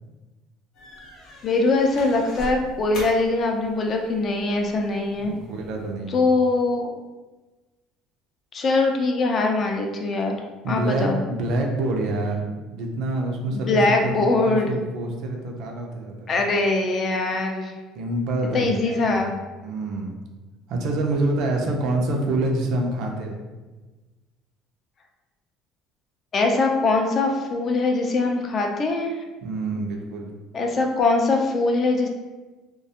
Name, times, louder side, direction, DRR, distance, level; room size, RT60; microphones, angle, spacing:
sound 1, 0.7-5.9, equal, 70° left, 0.7 m, -41 dB
voice 1, 1.4-5.3 6.1-6.9 8.5-10.4 10.7-11.2 13.5-14.7 16.3-17.7 18.5-19.3 26.3-29.2 30.5-32.1, left 3 dB, 40° left, 2 dB, 0.4 m, -22 dB
voice 2, 5.2-6.2 10.6-16.4 18.0-19.3 19.6-20.2 20.7-23.4 29.4-30.3, right 2 dB, 65° right, 2 dB, 0.5 m, -27 dB
2.4 x 2.2 x 2.7 m, 1.2 s
cardioid pair, 115°, 0 cm